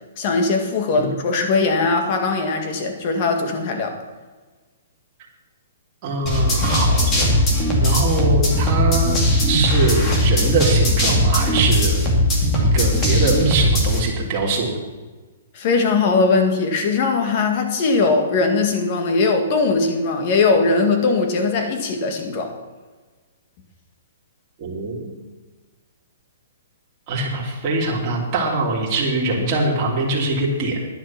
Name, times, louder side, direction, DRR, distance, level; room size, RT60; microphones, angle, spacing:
voice 1, 0.2-4.0 15.5-22.5, left 3 dB, 35° left, 5 dB, 1.8 m, -20 dB
voice 2, 6.0-7.4 7.7-9.2 9.5-12.0 12.6-14.7 24.6-25.1 27.1-30.9, right 2 dB, 25° right, -4 dB, 3.2 m, -23 dB
sound 1, 6.3-14.0, equal, 20° left, 2.3 m, -18 dB
11.0 x 10.5 x 5.9 m, 1.3 s
hypercardioid pair, 165°, 0 cm